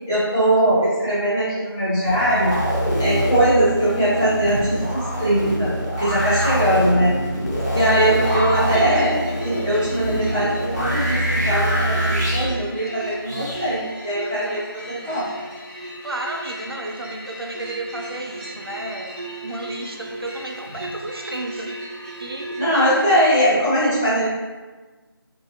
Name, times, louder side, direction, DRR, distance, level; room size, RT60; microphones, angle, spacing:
voice 1, 0.0-2.6 3.0-7.2 7.7-15.3 22.5-24.3, right 1 dB, 10° left, -15 dB, 0.6 m, -21 dB
sound 1, 2.0-12.5 13.3-13.7, equal, 40° left, 1.1 m, -24 dB
voice 2, 7.7-8.2 16.0-21.7 22.2-22.6, right 1 dB, 75° right, 1 dB, 0.7 m, -33 dB
sound 2, 8.2-23.3, right 1 dB, 20° right, 0.9 m, -36 dB
4.1 x 2.7 x 2.8 m, 1.3 s
figure-of-eight pair, 170°, 13 cm